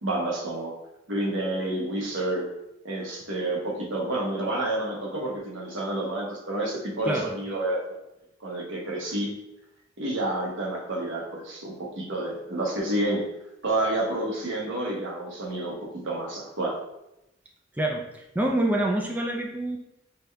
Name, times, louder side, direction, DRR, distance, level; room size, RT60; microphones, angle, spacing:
voice 1, 0.0-0.7 1.1-2.5 2.8-8.0 8.4-9.3 10.0-13.2 13.6-16.8, right 1 dB, 70° right, -3 dB, 1.1 m, -29 dB
voice 2, 17.7-19.8, right 1 dB, 10° right, -1 dB, 0.4 m, -26 dB
5.2 x 2.3 x 3.2 m, 0.87 s
head